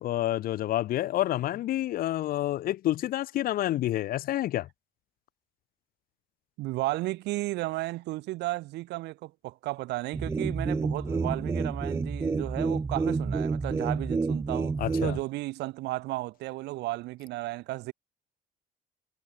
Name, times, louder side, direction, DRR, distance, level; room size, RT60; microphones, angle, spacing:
voice 1, 0.0-4.7 14.8-15.2, left 14 dB, 60° left, 0.6 m, -28 dB
voice 2, 6.6-17.9, right 19 dB, 85° right, 4.8 m, -34 dB
sound 1, 10.1-15.2, right 4 dB, 15° right, 0.4 m, -29 dB
cardioid pair, 110°, 17 cm